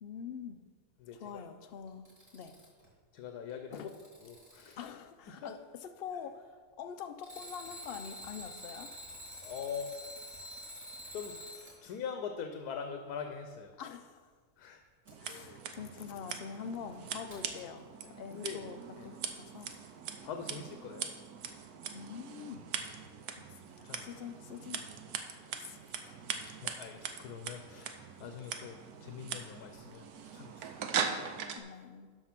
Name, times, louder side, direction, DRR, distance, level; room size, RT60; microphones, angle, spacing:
voice 1, 0.0-0.6 1.1-2.1 2.3-2.5 3.7-3.9 4.8-8.9 13.8-14.3 15.2-19.7 21.9-22.7 23.8-24.8 25.6-25.8 26.1-26.2 31.6-32.1, left 7 dB, 55° left, 8 dB, 0.6 m, -45 dB
voice 2, 1.0-1.4 3.1-3.9 4.2-4.8 5.3-5.5 9.4-9.9 11.1-11.4 11.8-13.7 14.6-14.8 18.0-18.6 19.0-19.1 20.2-21.1 23.8-24.1 26.6-30.1 30.3-30.9, left 7 dB, 90° left, 6 dB, 1.3 m, -43 dB
Alarm, 1.9-2.9 3.5-4.9 7.2-11.8 15.1-15.2 17.3-17.4, equal, 10° right, 2.7 m, -47 dB
Scissors, 15.1-31.6, right 7 dB, 80° right, 1.3 m, -41 dB
12.0 x 4.6 x 5.9 m, 1.5 s
omnidirectional pair, 1.6 m